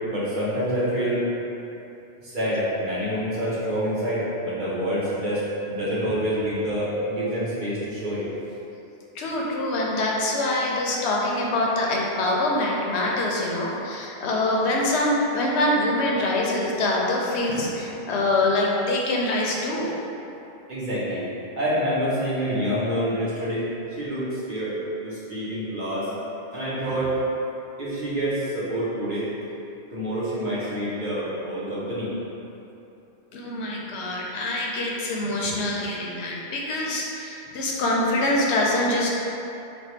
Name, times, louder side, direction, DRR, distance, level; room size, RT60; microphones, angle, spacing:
voice 1, 0.1-1.2 2.2-8.2 20.7-21.2 21.6-23.7 24.0-24.7 25.0-26.1 26.5-27.2 27.8-29.3 29.9-32.1, equal, 45° right, -9 dB, 1.0 m, -27 dB
voice 2, 9.1-19.9 33.3-39.1, left 1 dB, 75° left, -3 dB, 0.8 m, -24 dB
3.4 x 2.2 x 4.3 m, 2.9 s
omnidirectional pair, 1.2 m